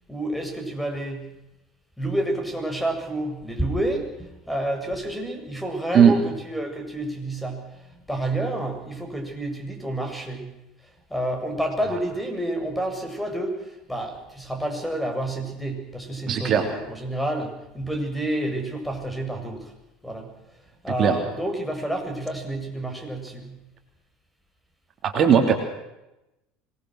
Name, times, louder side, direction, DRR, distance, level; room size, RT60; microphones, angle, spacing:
voice 1, 0.1-1.4 2.0-10.6 11.1-19.7 20.0-20.3 20.8-23.6, right 1 dB, 5° left, 4 dB, 7.4 m, -29 dB
voice 2, 16.3-16.7 21.0-21.2 25.0-25.5, right 7 dB, 45° right, 4 dB, 3.3 m, -17 dB
25.5 x 20.0 x 6.5 m, 0.93 s
hypercardioid pair, 70°, 0 cm